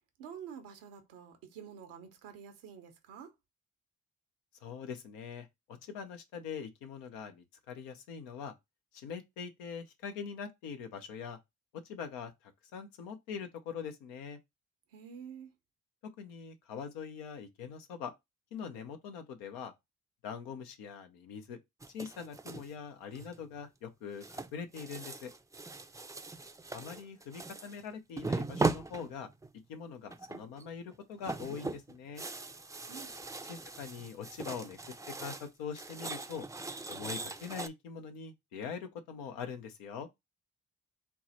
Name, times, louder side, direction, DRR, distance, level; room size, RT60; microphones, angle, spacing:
voice 1, 0.2-3.3 14.9-15.5 32.8-33.1, right 7 dB, 90° right, 0.8 m, -48 dB
voice 2, 4.6-8.5 8.9-11.4 11.8-14.4 16.2-18.1 18.5-19.7 20.2-21.6 21.9-25.3 26.7-29.3 29.7-32.2 33.5-34.8 35.2-36.5 36.9-40.1, left 6 dB, 90° left, 0.6 m, -43 dB
sound 1, 21.8-22.7 23.1-23.6 24.2-27.8 28.2-29.6 30.1-30.6 30.9-35.5 35.7-37.7, right 3 dB, 10° right, 0.4 m, -39 dB
4.5 x 2.1 x 4.0 m
hypercardioid pair, 45°, 33 cm